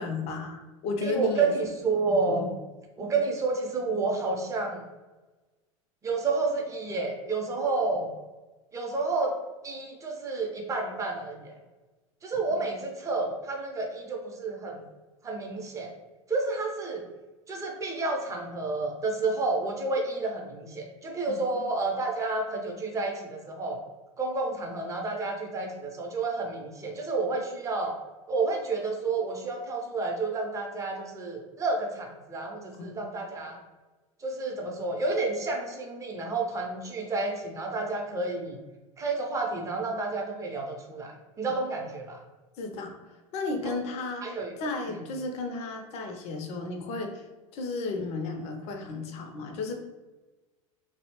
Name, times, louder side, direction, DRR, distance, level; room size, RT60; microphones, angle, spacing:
voice 1, 0.0-1.5 12.5-12.6 21.3-21.7 32.8-33.0 42.6-47.2 47.5-49.8, left 3 dB, 35° left, 4 dB, 0.5 m, -34 dB
voice 2, 1.0-2.5 3.0-4.8 6.0-8.1 8.7-9.4 9.6-11.6 12.2-14.8 15.2-15.9 16.3-17.0 17.5-23.8 24.2-28.0 28.3-33.6 34.2-38.6 39.0-42.2 43.7-43.8 44.2-44.5 44.9-45.0, right 3 dB, 15° right, 1 dB, 0.5 m, -30 dB
2.7 x 2.0 x 2.9 m, 1.2 s
figure-of-eight pair, 80°, 18 cm